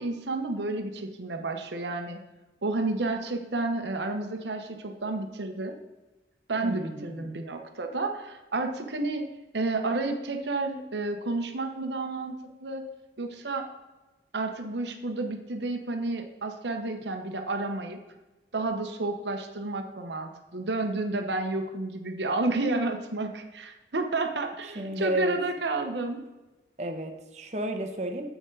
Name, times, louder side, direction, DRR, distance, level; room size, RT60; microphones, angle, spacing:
voice 1, 0.0-2.2 2.6-5.7 6.5-9.3 9.5-12.8 13.2-13.6 14.3-18.0 18.5-26.2, right 2 dB, 85° right, 5 dB, 0.9 m, -31 dB
voice 2, 6.6-7.3 24.6-25.4 26.8-28.3, right 1 dB, 40° right, 5 dB, 0.9 m, -33 dB
8.1 x 6.4 x 3.9 m, 1.1 s
head